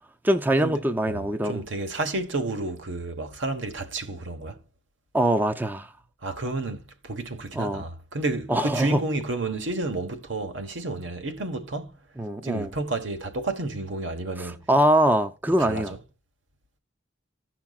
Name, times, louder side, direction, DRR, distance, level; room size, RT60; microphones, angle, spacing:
voice 1, 0.2-1.6 5.1-5.9 7.5-7.8 8.5-9.0 12.2-12.7 14.4-15.9, right 1 dB, 10° right, 0.4 m, -23 dB
voice 2, 1.1-4.6 6.2-11.9 12.4-14.6 15.6-16.0, right 2 dB, 75° right, 1.2 m, -31 dB
15.0 x 5.8 x 2.3 m
head